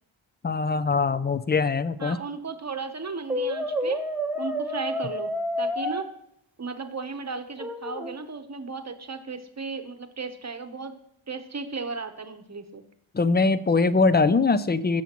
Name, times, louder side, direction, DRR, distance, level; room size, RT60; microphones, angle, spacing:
voice 1, 0.4-2.2 13.1-15.0, left 4 dB, 25° left, 15 dB, 0.3 m, -22 dB
voice 2, 2.0-4.0 4.3-6.1 6.6-11.0 11.3-12.8, right 4 dB, 35° right, 8 dB, 0.9 m, -35 dB
Brass instrument, 3.3-6.1 7.6-8.2, equal, 5° right, 0.8 m, -29 dB
15.0 x 7.0 x 3.0 m, 0.78 s
wide cardioid pair, 105°, 49 cm